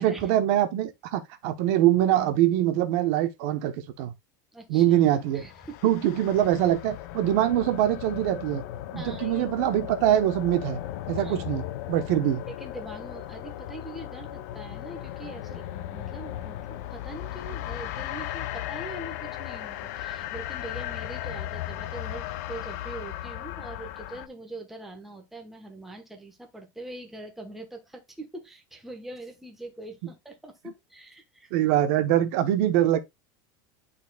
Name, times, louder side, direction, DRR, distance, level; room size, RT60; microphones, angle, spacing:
voice 1, 0.0-4.1 4.7-5.4 5.8-8.6 8.9-10.8 11.1-12.4 31.5-33.0, right 12 dB, 50° right, 1.0 m, -23 dB
voice 2, 4.5-5.0 5.3-5.9 8.9-9.5 11.2-11.4 12.5-31.5, right 2 dB, ahead, 1.1 m, -43 dB
sound 1, 5.3-24.3, left 13 dB, 55° left, 0.6 m, -36 dB
11.0 x 4.3 x 2.3 m
supercardioid pair, 180°, 11 cm